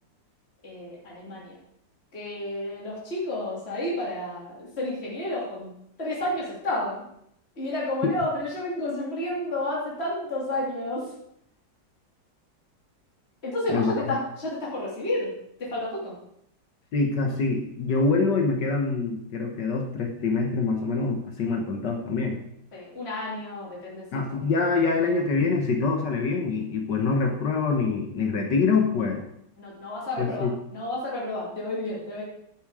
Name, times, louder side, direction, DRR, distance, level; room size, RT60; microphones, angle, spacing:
voice 1, 0.6-1.6 2.1-5.7 6.0-7.0 7.5-11.1 13.4-15.3 15.6-16.2 22.7-24.2 29.6-32.2, left 1 dB, 35° left, -5 dB, 3.1 m, -31 dB
voice 2, 16.9-22.4 24.1-29.2 30.2-30.5, left 4 dB, 70° left, 2 dB, 1.7 m, -25 dB
11.0 x 7.1 x 4.8 m, 0.74 s
omnidirectional pair, 2.0 m